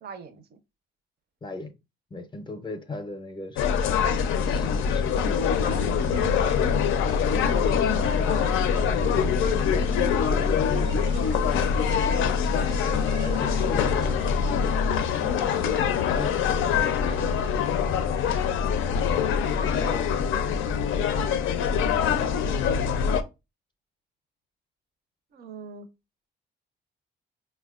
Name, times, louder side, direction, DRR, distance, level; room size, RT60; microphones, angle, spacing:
voice 1, 0.0-0.6 11.9-12.4 15.1-15.7 21.0-21.5 25.3-25.9, right 5 dB, 55° right, 0.5 m, -43 dB
voice 2, 1.4-1.7 2.1-3.6 4.5-5.4 6.6-8.4 8.8-9.9 10.3-11.0 12.9-14.7 15.6-18.2 18.6-20.7, left 2 dB, 25° left, 0.5 m, -38 dB
sound 1, 3.6-23.2, left 7 dB, 85° left, 0.4 m, -24 dB
sound 2, 5.6-14.8, right 1 dB, 90° right, 0.9 m, -37 dB
4.2 x 2.2 x 2.3 m
cardioid pair, 90°, 20 cm